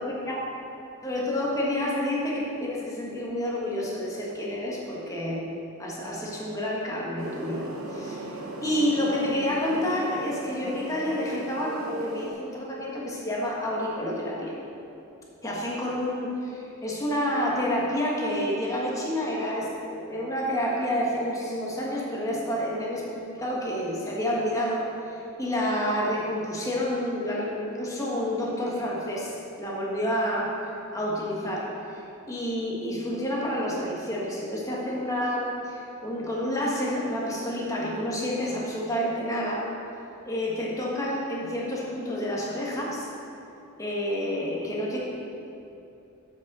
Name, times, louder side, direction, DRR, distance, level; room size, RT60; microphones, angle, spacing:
voice 1, 0.0-0.6 1.0-5.4 5.8-8.3 8.6-14.5 15.4-23.1 23.3-32.0 32.3-39.7 40.2-43.1 43.8-45.0, left 1 dB, 15° left, -4 dB, 1.5 m, -29 dB
sound 1, 7.2-12.3, right 1 dB, 70° right, 1.0 m, -37 dB
7.3 x 6.3 x 6.2 m, 2.8 s
head